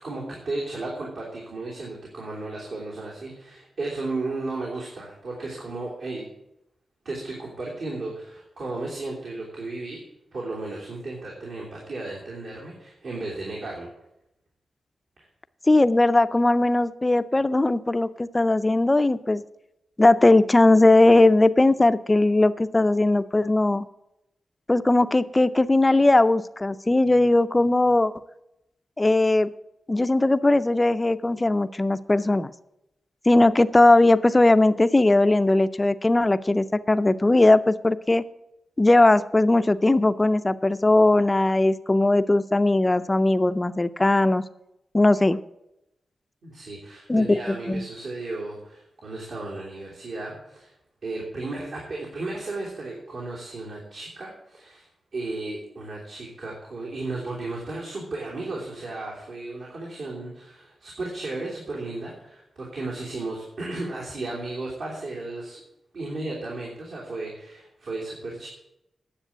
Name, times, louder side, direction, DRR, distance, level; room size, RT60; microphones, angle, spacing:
voice 1, 0.0-6.2 7.0-10.0 10.3-13.9 15.2-15.3 46.4-50.7 51.0-54.9 55.1-65.6 65.9-68.5, right 2 dB, 65° right, -4 dB, 3.0 m, -34 dB
voice 2, 15.7-19.4 20.0-23.9 24.7-28.1 29.0-29.5 29.9-32.5 33.3-38.3 38.8-44.4 44.9-45.4 47.1-47.8, left 2 dB, 15° left, 13 dB, 0.5 m, -19 dB
9.9 x 7.6 x 8.2 m, 0.86 s
wide cardioid pair, 150°, 0 cm